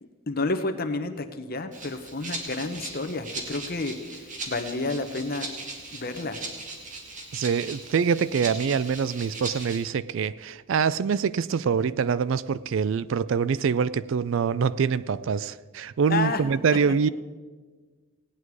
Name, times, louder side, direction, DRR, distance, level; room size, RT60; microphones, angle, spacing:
voice 1, 0.3-5.5 5.9-6.4 16.1-16.5, left 3 dB, 45° left, 0.9 m, -30 dB
Rattle (instrument), 1.7-9.8, right 3 dB, 35° right, 2.0 m, -38 dB
voice 2, 7.3-17.1, right 6 dB, 60° right, 0.3 m, -25 dB
17.5 x 9.8 x 4.7 m
head